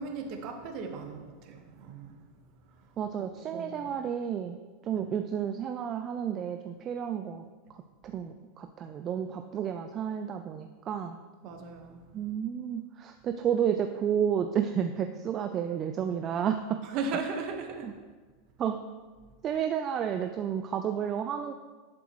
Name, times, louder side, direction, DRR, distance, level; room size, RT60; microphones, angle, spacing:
voice 1, 0.0-2.2 3.2-3.9 5.0-5.1 11.4-12.0 16.8-17.9, right 4 dB, 50° right, 4 dB, 1.3 m, -37 dB
voice 2, 3.0-4.6 4.9-7.4 8.0-11.2 12.1-16.8 17.8-17.9 18.6-18.8 19.4-21.5, right 8 dB, 35° right, 6 dB, 0.4 m, -31 dB
11.0 x 7.6 x 3.1 m, 1.4 s
supercardioid pair, 130°, 0 cm